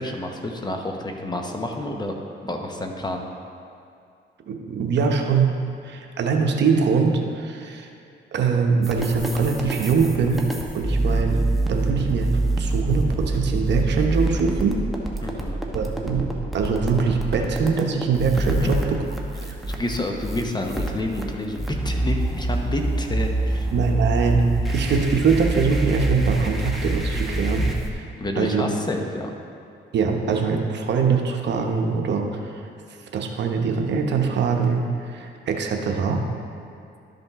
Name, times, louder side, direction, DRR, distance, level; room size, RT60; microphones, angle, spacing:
voice 1, 0.0-2.2 2.4-3.2 15.2-15.6 18.6-18.7 19.7-23.7 28.2-29.3, left 1 dB, 20° left, 2 dB, 0.9 m, -29 dB
voice 2, 4.4-5.5 5.8-7.9 8.3-10.5 10.7-11.4 11.7-14.8 15.7-16.2 16.5-19.0 19.4-19.5 23.7-24.4 24.7-28.0 28.4-28.6 29.9-32.6 33.1-36.2, right 5 dB, 60° right, 3 dB, 0.9 m, -23 dB
sound 1, 8.8-27.9, right 2 dB, ahead, 1.0 m, -26 dB
12.0 x 5.2 x 3.6 m, 2.4 s
cardioid pair, 90°, 20 cm